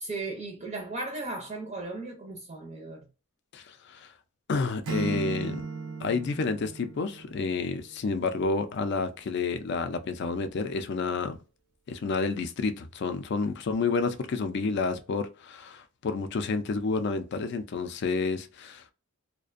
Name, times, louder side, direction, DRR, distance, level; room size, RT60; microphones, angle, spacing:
voice 1, 0.0-3.0, right 2 dB, 30° right, 0.5 m, -36 dB
voice 2, 3.5-4.1 4.5-5.7 6.0-11.4 11.9-18.9, left 4 dB, 55° left, 0.4 m, -30 dB
Acoustic guitar / Strum, 4.8-7.9, right 4 dB, 90° right, 0.5 m, -36 dB
2.4 x 2.1 x 2.4 m
head